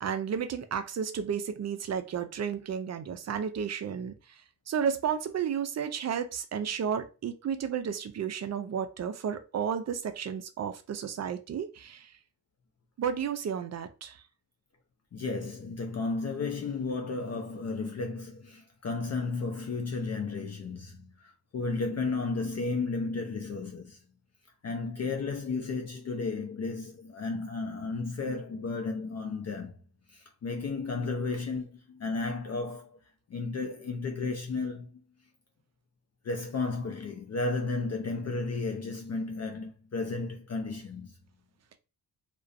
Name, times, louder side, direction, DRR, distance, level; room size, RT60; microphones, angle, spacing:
voice 1, 0.0-4.1 4.7-12.1 13.0-14.2, right 7 dB, 40° right, 0.4 m, -32 dB
voice 2, 15.1-24.0 24.6-29.7 30.1-32.9 33.3-34.9 36.2-41.1, left 3 dB, 35° left, 0.5 m, -33 dB
2.3 x 2.1 x 2.5 m
supercardioid pair, 60°, 45 cm